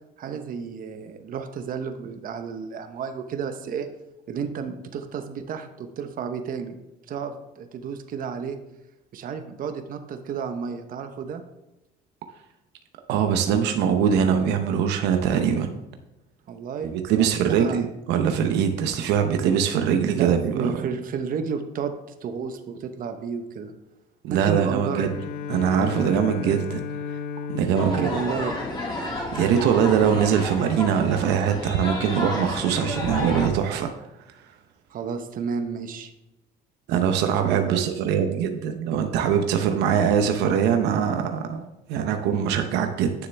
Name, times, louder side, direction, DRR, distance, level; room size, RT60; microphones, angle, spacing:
voice 1, 0.2-3.9 4.3-6.8 7.1-8.6 9.1-11.4 13.5-13.6 16.5-17.8 20.1-21.9 22.2-23.7 24.3-25.1 27.8-28.6 29.8-30.2 34.9-36.1 37.4-37.8, right 6 dB, 55° right, 7 dB, 0.9 m, -32 dB
voice 2, 13.1-15.7 16.8-20.7 24.2-25.1 25.5-26.8 27.1-27.2 27.5-28.1 29.3-33.9 36.9-43.1, right 8 dB, 90° right, 6 dB, 0.8 m, -22 dB
Bowed string instrument, 24.9-29.5, left 7 dB, 70° left, 0.6 m, -35 dB
sound 1, 27.7-33.5, left 1 dB, 25° left, 3.0 m, -31 dB
9.5 x 6.6 x 3.4 m, 0.94 s
cardioid pair, 110°, 17 cm